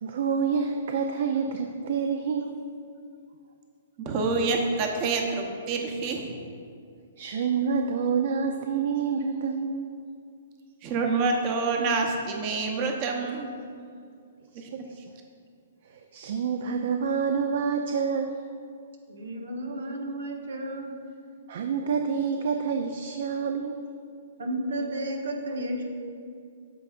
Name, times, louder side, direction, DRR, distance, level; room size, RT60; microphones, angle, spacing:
voice 1, 0.0-2.6 7.2-9.9 14.7-15.0 16.1-18.4 21.5-23.8, right 6 dB, 65° right, 5 dB, 0.4 m, -27 dB
voice 2, 4.0-6.4 10.8-13.5 14.5-14.7, right 3 dB, 35° right, 2 dB, 0.9 m, -27 dB
voice 3, 19.1-20.9 24.4-25.8, right 1 dB, 85° right, 1 dB, 1.1 m, -32 dB
8.9 x 6.7 x 2.5 m, 2.3 s
hypercardioid pair, 140°, 0 cm